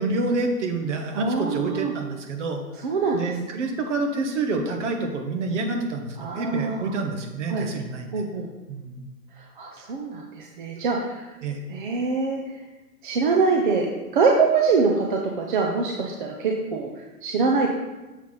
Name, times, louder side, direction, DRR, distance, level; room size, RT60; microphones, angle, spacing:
voice 1, 0.0-2.6 3.1-8.1 8.7-9.0 11.4-11.6, right 3 dB, 50° right, 3 dB, 1.3 m, -28 dB
voice 2, 1.1-1.9 2.8-3.4 6.2-7.0 7.5-7.7 8.1-8.5 9.4-11.3 11.7-12.4 13.0-17.7, right 4 dB, 35° right, 0 dB, 0.6 m, -24 dB
7.1 x 5.8 x 3.9 m, 1.1 s
hypercardioid pair, 150°, 47 cm